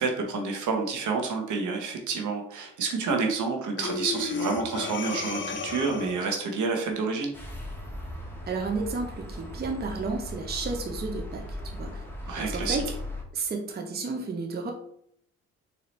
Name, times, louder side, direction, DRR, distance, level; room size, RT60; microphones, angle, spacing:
voice 1, 0.0-7.3 12.3-12.8, right 4 dB, 65° right, 3 dB, 1.0 m, -29 dB
Breathing, 3.8-6.3, left 5 dB, 35° left, 0.6 m, -33 dB
sound 1, 7.3-13.2, left 1 dB, 5° left, 1.0 m, -38 dB
voice 2, 8.5-12.0 12.4-12.8 13.3-14.7, right 4 dB, 30° right, 2 dB, 0.7 m, -32 dB
4.1 x 2.8 x 3.2 m, 0.69 s
supercardioid pair, 70°, 32 cm